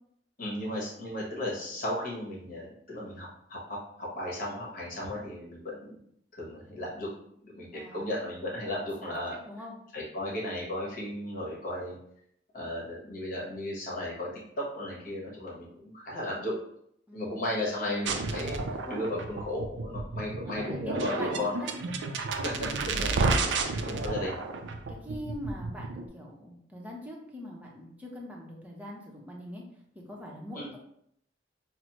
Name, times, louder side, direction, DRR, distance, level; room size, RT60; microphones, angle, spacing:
voice 1, 0.4-6.0 6.3-7.1 7.4-9.3 9.9-12.0 12.5-16.6 17.1-21.5 22.4-23.5 23.9-24.4 30.5-30.7, left 1 dB, 50° left, -4 dB, 1.2 m, -35 dB
voice 2, 7.7-8.1 9.0-9.1 9.4-9.8 17.1-17.4 20.4-21.7 24.9-29.6 29.9-30.8, equal, 10° right, -2 dB, 0.7 m, -42 dB
sound 1, 18.1-26.1, right 3 dB, 70° right, 0.4 m, -31 dB
5.9 x 2.0 x 2.9 m, 0.70 s
head